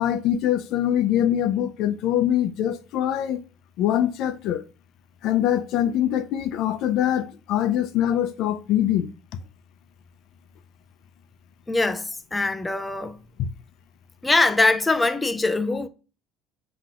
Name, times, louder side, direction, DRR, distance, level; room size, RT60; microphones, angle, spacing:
voice 1, 0.0-3.4 3.8-4.6 5.2-9.1 13.4-13.5, left 11 dB, 60° left, 0.5 m, -23 dB
voice 2, 11.7-13.2 14.2-15.9, left 3 dB, 10° left, 0.4 m, -22 dB
5.8 x 2.9 x 2.4 m
cardioid pair, 125°, 0 cm